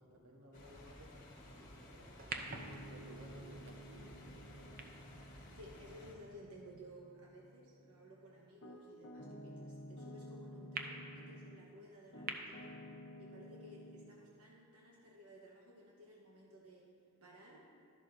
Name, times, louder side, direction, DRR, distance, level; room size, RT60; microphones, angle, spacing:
voice 1, 0.0-2.1 2.6-4.7, equal, 65° right, -1 dB, 1.4 m, -58 dB
sound 1, 0.5-6.1, left 1 dB, 40° left, 1.5 m, -56 dB
sound 2, 2.2-6.6 7.3-7.4 10.7-10.8 12.3-12.4, right 4 dB, 40° right, 0.6 m, -48 dB
Piano, 2.3-11.7 12.1-14.1, equal, 60° left, 0.8 m, -53 dB
voice 2, 5.5-12.8 13.2-16.9 17.2-17.7, equal, 85° right, -3 dB, 1.2 m, -57 dB
12.5 x 11.0 x 2.7 m, 2.2 s
head